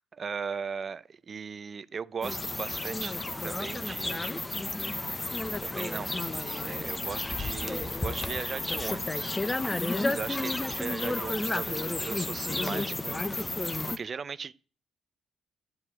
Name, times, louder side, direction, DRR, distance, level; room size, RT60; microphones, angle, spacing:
voice 1, 0.0-3.2 3.4-4.4 4.9-9.8 10.0-14.5, right 6 dB, 45° right, 0.6 m, -39 dB
sound 1, 2.2-14.0, left 2 dB, 20° left, 0.9 m, -32 dB
13.0 x 4.8 x 8.8 m
cardioid pair, 90°, 0 cm